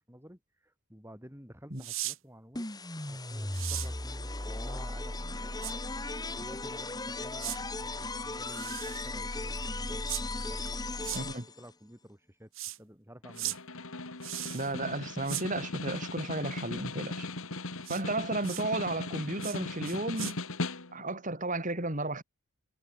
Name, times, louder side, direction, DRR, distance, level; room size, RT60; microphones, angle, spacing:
voice 1, 0.1-2.7 3.0-5.5 6.3-10.0 10.3-12.5 12.8-13.6, equal, 10° right, 5.6 m, -52 dB
sound 1, 1.8-2.2 3.5-3.9 5.6-5.7 7.4-7.6 8.5-9.1 10.1-10.2 11.0-11.2 12.5-12.8 13.4-13.6 14.2-14.7 15.3-15.5 17.8-18.0 18.4-18.6 19.4-19.6 19.9-20.3, right 16 dB, 60° right, 1.4 m, -37 dB
sound 2, 2.5-11.7, left 2 dB, 15° left, 2.0 m, -36 dB
voice 2, 11.1-11.4 14.5-17.3 17.9-20.4 20.9-22.2, right 2 dB, 35° right, 4.0 m, -33 dB
Snare drum, 13.2-21.2, left 2 dB, 70° left, 2.5 m, -38 dB
head